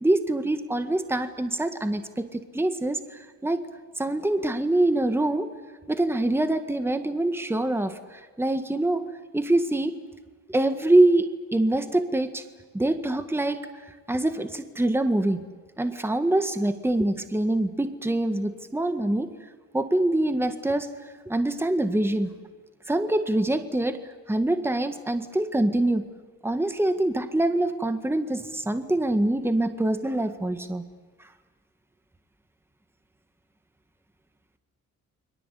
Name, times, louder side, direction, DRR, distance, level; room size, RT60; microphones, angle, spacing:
voice 1, 0.0-3.6 4.0-5.5 5.9-9.1 9.3-9.9 10.5-12.4 12.7-13.7 14.1-15.4 15.8-19.3 19.7-20.9 21.3-22.3 22.9-24.0 24.3-26.1 26.4-30.8, right 1 dB, 10° right, 8 dB, 1.7 m, -24 dB
29.5 x 23.0 x 8.4 m, 1.4 s
cardioid pair, 90°, 30 cm